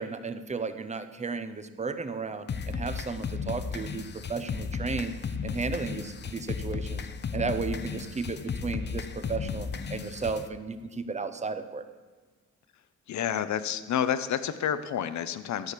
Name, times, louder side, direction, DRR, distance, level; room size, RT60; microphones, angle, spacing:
voice 1, 0.0-4.0 4.3-5.2 5.4-7.0 7.3-11.8, right 4 dB, 25° right, 10 dB, 0.8 m, -34 dB
sound 1, 2.5-10.5, left 6 dB, 35° left, 0.7 m, -35 dB
voice 2, 13.1-15.7, left 9 dB, 70° left, 13 dB, 0.8 m, -29 dB
13.5 x 6.5 x 8.3 m, 1.4 s
wide cardioid pair, 140°, 30 cm